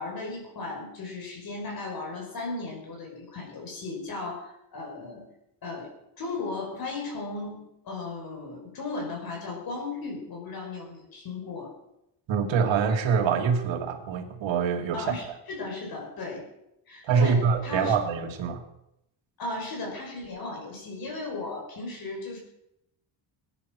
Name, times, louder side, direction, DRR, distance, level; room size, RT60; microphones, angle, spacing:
voice 1, 0.0-5.3 5.6-11.7 14.9-16.4 16.9-17.9 19.4-22.4, left 3 dB, 50° left, 0 dB, 5.7 m, -36 dB
voice 2, 12.3-15.1 17.0-18.6, right 6 dB, 75° right, 5 dB, 2.5 m, -25 dB
20.0 x 10.0 x 6.2 m, 0.82 s
cardioid pair, 160°, 46 cm